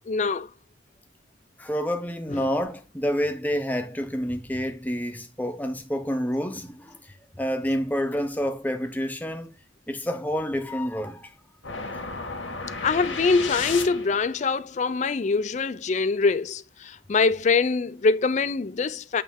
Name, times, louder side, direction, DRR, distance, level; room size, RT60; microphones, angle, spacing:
voice 1, 0.1-0.5 2.3-2.4 12.8-19.2, left 4 dB, 35° left, 0.4 m, -24 dB
voice 2, 1.6-7.0 7.4-9.5 9.9-11.3, equal, 10° left, 0.7 m, -28 dB
sound 1, 11.6-14.3, left 4 dB, 75° left, 1.6 m, -33 dB
8.4 x 3.3 x 3.5 m
head